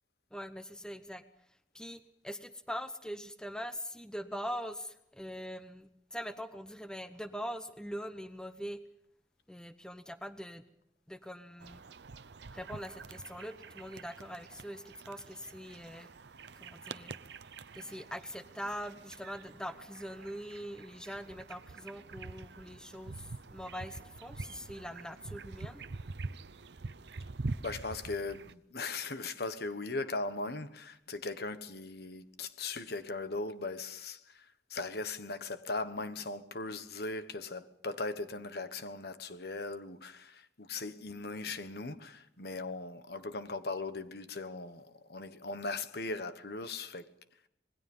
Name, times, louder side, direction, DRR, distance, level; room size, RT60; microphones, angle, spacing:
voice 1, 0.3-1.2 1.7-8.8 9.5-10.6 11.1-11.8 12.5-16.1 16.6-17.1 17.7-25.9, equal, 5° left, 0.9 m, -42 dB
sound 1, 11.6-28.5, right 3 dB, 70° right, 0.7 m, -46 dB
voice 2, 27.6-34.4 34.7-47.1, left 3 dB, 60° left, 1.3 m, -39 dB
26.5 x 20.5 x 5.5 m
head